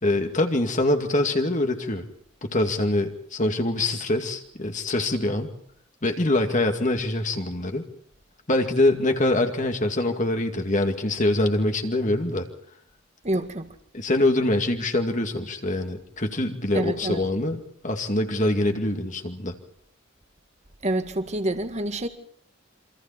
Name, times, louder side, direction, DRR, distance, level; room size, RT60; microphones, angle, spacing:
voice 1, 0.0-2.1 2.4-5.5 6.0-7.9 8.5-12.5 13.9-19.5, left 1 dB, 40° left, 2.3 m, -24 dB
voice 2, 13.2-13.7 16.7-17.2 20.8-22.1, right 1 dB, 35° right, 1.9 m, -27 dB
28.0 x 25.5 x 4.4 m
head